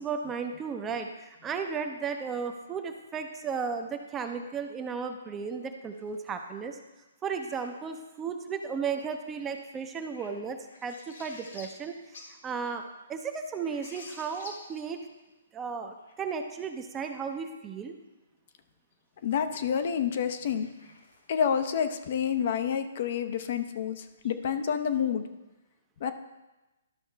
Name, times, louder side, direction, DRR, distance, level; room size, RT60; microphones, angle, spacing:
voice 1, 0.0-6.8 7.2-12.0 12.3-15.0 15.5-17.9, right 5 dB, 15° right, 5 dB, 0.6 m, -35 dB
sound 1, 5.8-6.5 7.3-8.0 9.6-12.4 12.7-12.8 13.3-15.2 16.0-16.2 19.9-20.0 20.5-21.5, left 3 dB, 75° left, 1.9 m, -51 dB
voice 2, 19.2-20.7 21.3-25.3 26.0-26.1, left 8 dB, 50° left, 8 dB, 0.6 m, -28 dB
12.0 x 5.4 x 3.4 m, 1.0 s
hypercardioid pair, 145°, 0 cm